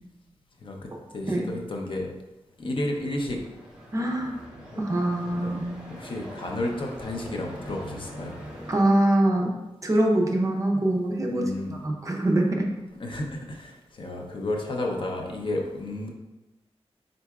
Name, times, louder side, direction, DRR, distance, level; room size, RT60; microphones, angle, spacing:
voice 1, 0.6-2.1 2.6-3.4 5.3-5.5 5.9-8.4 11.3-11.8 13.0-16.1, left 1 dB, 55° left, 1 dB, 0.6 m, -32 dB
sound 1, 2.6-8.8, equal, 10° right, 0.9 m, -43 dB
voice 2, 3.9-4.4 4.8-5.8 8.7-9.5 9.8-12.7, right 1 dB, 30° right, 0 dB, 0.5 m, -24 dB
4.5 x 3.9 x 2.3 m, 1.0 s
wide cardioid pair, 145°, 11 cm